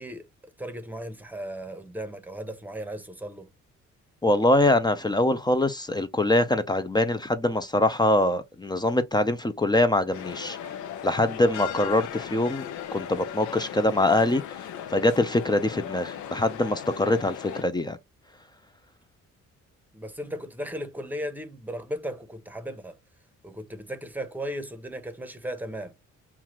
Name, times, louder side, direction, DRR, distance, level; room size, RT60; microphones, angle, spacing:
voice 1, 0.0-3.5 19.9-23.0 23.4-25.9, equal, 5° right, 0.9 m, -36 dB
voice 2, 4.2-10.6 11.0-12.7 12.9-14.4 14.9-18.0, left 1 dB, 15° left, 0.5 m, -23 dB
sound 1, 10.1-17.6, left 10 dB, 75° left, 0.7 m, -37 dB
5.7 x 2.4 x 3.0 m
cardioid pair, 90°, 30 cm